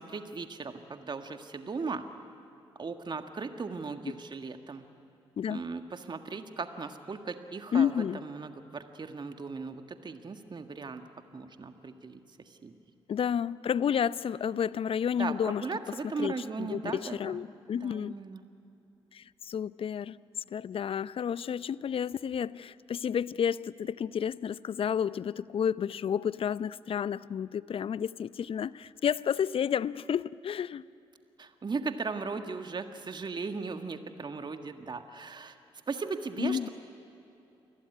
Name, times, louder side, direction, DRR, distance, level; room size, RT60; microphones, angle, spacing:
voice 1, 0.0-2.0 2.8-4.8 5.5-11.0 11.3-12.2 12.4-12.8 15.2-17.4 17.8-18.4 31.4-35.6 35.9-36.7, right 4 dB, 35° right, 7 dB, 1.7 m, -37 dB
voice 2, 7.7-8.2 13.1-15.6 16.2-18.2 19.1-20.2 20.5-30.8 36.4-36.7, left 8 dB, 45° left, 19 dB, 0.6 m, -31 dB
28.5 x 21.0 x 9.6 m, 2.8 s
hypercardioid pair, 45°, 13 cm